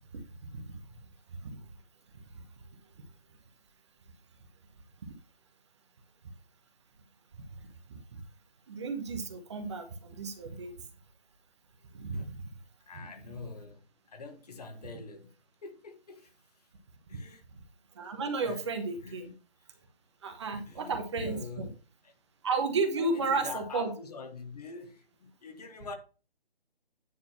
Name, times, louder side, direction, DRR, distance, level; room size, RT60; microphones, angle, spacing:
voice 1, 0.1-0.8 1.4-1.6 5.0-5.1 7.9-8.2 8.7-10.7 11.9-12.3 18.0-19.3 20.2-21.7 22.4-23.9, right 3 dB, 30° right, 1.2 m, -33 dB
voice 2, 12.9-15.3 15.6-16.7 17.1-17.4 18.4-18.6 19.0-19.4 20.7-21.7 22.0-22.1 23.0-25.9, left 4 dB, 40° left, 1.4 m, -45 dB
9.7 x 4.0 x 5.8 m
figure-of-eight pair, 155°, 30 cm